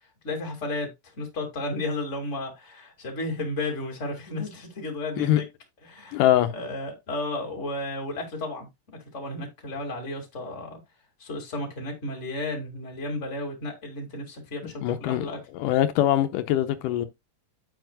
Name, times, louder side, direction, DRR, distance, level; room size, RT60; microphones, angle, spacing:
voice 1, 0.2-0.9 1.2-5.5 5.8-6.2 6.5-8.7 9.1-10.8 11.2-15.4, left 2 dB, 25° left, 2.3 m, -33 dB
voice 2, 6.1-6.5 14.8-15.3 15.5-17.1, left 12 dB, 85° left, 2.3 m, -22 dB
9.2 x 8.3 x 2.4 m
omnidirectional pair, 3.8 m